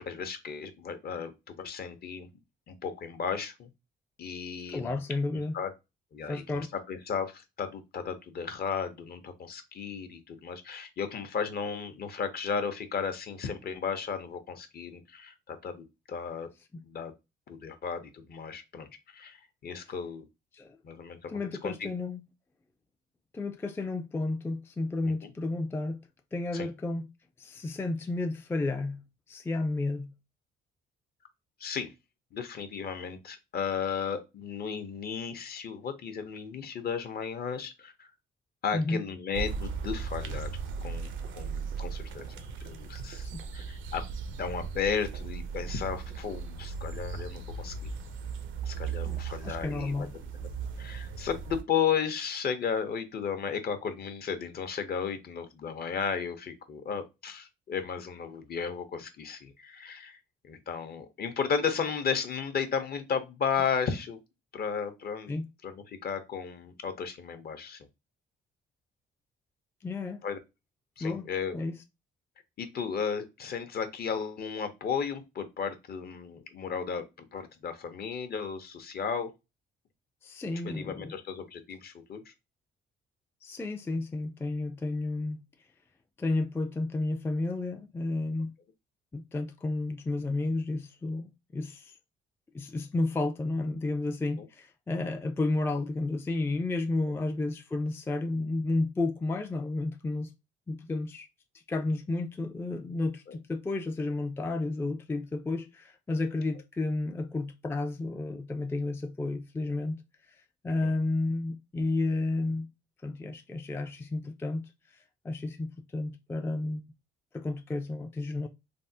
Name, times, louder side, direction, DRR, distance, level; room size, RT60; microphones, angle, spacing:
voice 1, 0.1-2.3 2.7-3.7 4.2-4.9 5.5-5.7 6.1-16.5 16.8-17.1 17.5-18.9 19.1-20.2 20.8-21.7 25.2-25.3 26.5-26.7 31.6-31.9 32.3-38.1 38.6-40.5 40.8-42.3 42.6-43.3 43.5-44.0 44.4-47.7 48.7-50.1 50.8-60.2 60.4-64.2 64.5-65.3 65.6-67.8 70.2-70.4 71.0-71.6 72.6-79.3 80.6-82.2 94.4-94.5 103.3-103.4 110.8-110.9, left 6 dB, 50° left, 0.7 m, -34 dB
voice 2, 4.7-5.5 6.3-6.7 20.5-20.8 21.3-22.2 23.3-26.0 26.3-27.1 27.4-29.0 29.3-30.1 38.7-39.0 43.3-43.4 49.0-50.1 65.3-65.5 69.8-70.2 71.0-71.3 71.5-71.8 80.2-81.1 83.4-85.4 86.2-88.5 89.1-91.9 92.5-100.3 100.7-101.3 101.7-110.0 110.6-112.7 113.0-114.7 115.2-116.8 117.3-118.5, left 2 dB, 10° left, 0.3 m, -32 dB
sound 1, 39.3-51.6, right 5 dB, 80° right, 0.5 m, -37 dB
3.4 x 2.0 x 2.7 m
cardioid pair, 90°, 20 cm